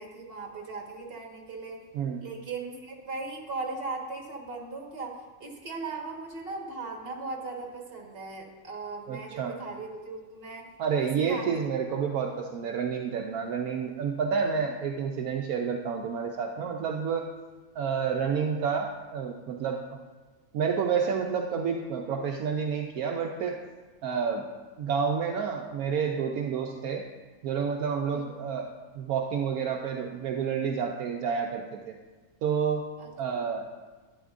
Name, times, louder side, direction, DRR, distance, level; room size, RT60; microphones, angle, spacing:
voice 1, 0.0-1.8 2.2-5.1 5.4-10.7 11.0-11.6 11.9-12.0 28.1-28.3 33.0-33.1, right 3 dB, 40° right, 0 dB, 1.6 m, -38 dB
voice 2, 9.1-9.5 10.8-17.3 17.8-19.8 20.5-23.5 24.0-24.4 24.8-27.0 27.4-31.9 32.4-32.9 33.2-33.7, right 6 dB, 75° right, 2 dB, 1.1 m, -29 dB
11.5 x 10.0 x 2.5 m, 1.3 s
omnidirectional pair, 1.6 m